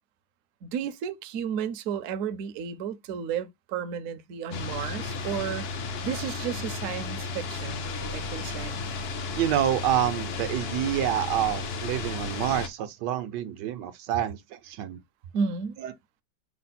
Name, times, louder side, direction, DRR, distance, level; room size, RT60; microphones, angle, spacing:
voice 1, 0.6-5.6 6.0-8.8 15.3-15.7, right 7 dB, 65° right, 0.9 m, -33 dB
sound 1, 4.5-12.7, left 4 dB, 75° left, 0.5 m, -33 dB
voice 2, 9.4-15.0 15.8-15.9, right 11 dB, 80° right, 1.2 m, -28 dB
5.8 x 2.0 x 4.1 m
omnidirectional pair, 1.9 m